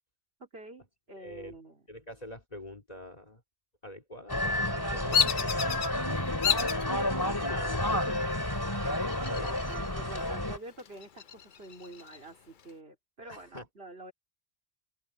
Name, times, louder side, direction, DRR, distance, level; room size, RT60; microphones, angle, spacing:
voice 1, 0.4-1.9 9.7-14.1, right 1 dB, 75° right, 3.9 m, -48 dB
voice 2, 1.2-1.6 1.9-3.4 3.8-5.6 6.7-7.0 7.4-8.3 9.3-9.5 13.2-13.7, left 1 dB, 40° left, 2.6 m, -45 dB
sound 1, 4.3-10.6, left 1 dB, 20° left, 2.8 m, -30 dB
Bird vocalization bird call bird song, 5.1-5.9 6.4-6.8 7.4-7.9 9.1-9.9 10.2-10.3 10.8-12.2, left 7 dB, 55° left, 0.8 m, -29 dB
open air
omnidirectional pair, 1.0 m